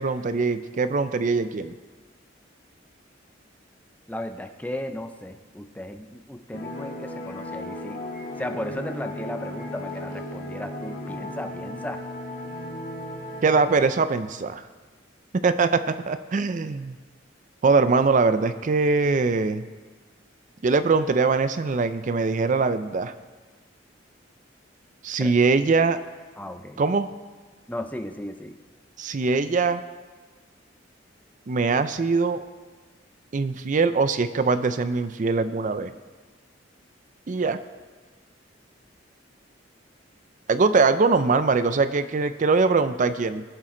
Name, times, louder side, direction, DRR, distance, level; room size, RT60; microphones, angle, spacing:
voice 1, 0.0-1.7 13.4-14.6 15.4-17.0 17.6-19.6 20.6-23.1 25.0-26.0 26.8-27.1 29.0-29.8 31.5-32.4 33.3-35.9 37.3-37.6 40.5-43.4, right 4 dB, 40° right, 12 dB, 0.4 m, -22 dB
voice 2, 4.1-8.0 8.4-12.0 25.2-25.4 26.4-26.8 27.7-28.6, left 1 dB, 10° left, 7 dB, 0.5 m, -35 dB
sound 1, 6.5-13.8, left 1 dB, 50° left, 2.0 m, -35 dB
20.5 x 7.4 x 3.8 m, 1.4 s
head